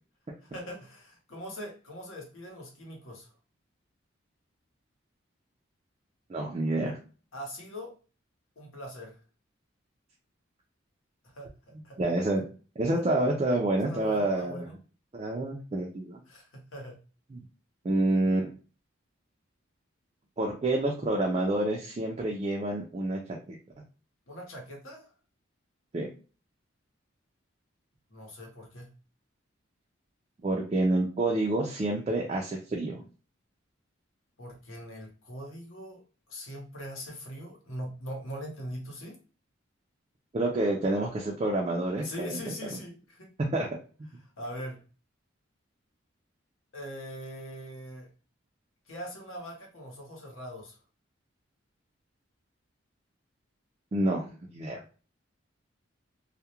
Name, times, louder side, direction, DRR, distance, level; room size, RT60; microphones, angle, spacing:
voice 1, 0.4-3.3 7.3-8.0 8.6-9.2 11.2-11.5 11.8-12.0 13.9-14.7 16.3-17.0 24.3-25.0 28.1-28.9 34.4-36.0 36.3-39.2 42.0-43.3 44.4-44.8 46.7-48.1 48.9-50.8, equal, 80° left, 0 dB, 0.9 m, -41 dB
voice 2, 6.3-7.0 12.0-12.4 12.8-14.7 15.1-16.2 17.3-17.4 17.8-18.5 20.4-23.2 23.5-23.6 25.9-26.1 30.4-33.0 40.3-42.4 43.5-43.7 53.9-54.8, right 2 dB, 30° right, -1 dB, 0.3 m, -28 dB
2.3 x 2.1 x 2.8 m, 0.36 s
head